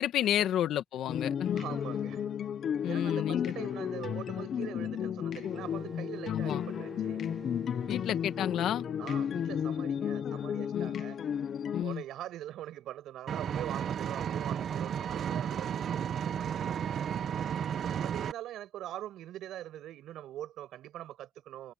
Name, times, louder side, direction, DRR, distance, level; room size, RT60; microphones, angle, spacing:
voice 1, 0.0-1.6 2.8-3.5 6.3-6.6 7.9-8.8 10.7-11.0 11.7-12.0, left 11 dB, 80° left, 1.8 m, -31 dB
sound 1, 1.1-11.8, left 8 dB, 60° left, 1.2 m, -33 dB
voice 2, 1.5-2.2 2.8-7.2 9.0-11.2 11.7-17.1 18.0-21.7, right 13 dB, 80° right, 7.7 m, -43 dB
Wind instrument woodwind instrument, 5.5-10.2, right 5 dB, 35° right, 7.9 m, -49 dB
Engine, 13.3-18.3, right 8 dB, 60° right, 1.4 m, -33 dB
cardioid pair, 90°, 0 cm